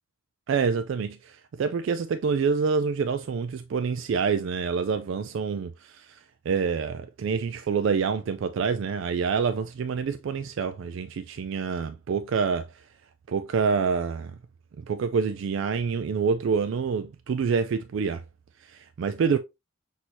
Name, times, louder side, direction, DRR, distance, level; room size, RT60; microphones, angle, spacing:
voice 1, 0.5-6.2 6.5-12.7 13.3-14.4 14.8-18.2 18.6-19.4, right 5 dB, 60° right, 0.3 m, -27 dB
6.2 x 2.7 x 2.8 m
head